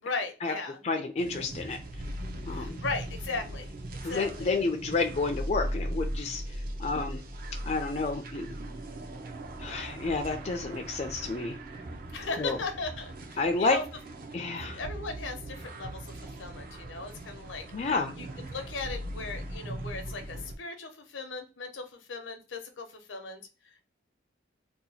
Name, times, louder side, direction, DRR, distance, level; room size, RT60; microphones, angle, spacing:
voice 1, 0.0-1.0 2.5-4.5 12.1-13.8 14.8-16.1 16.4-17.9 18.2-23.4, left 3 dB, 85° left, 6 dB, 0.7 m, -37 dB
voice 2, 0.8-1.8 2.4-2.8 4.0-6.4 6.8-7.2 7.6-8.5 9.6-11.6 12.4-12.6 13.4-13.8 14.3-14.8 17.7-18.1, left 3 dB, 35° left, 3 dB, 0.4 m, -30 dB
sound 1, 1.2-20.5, right 1 dB, 45° right, 0.5 m, -39 dB
2.8 x 2.2 x 4.0 m, 0.33 s
head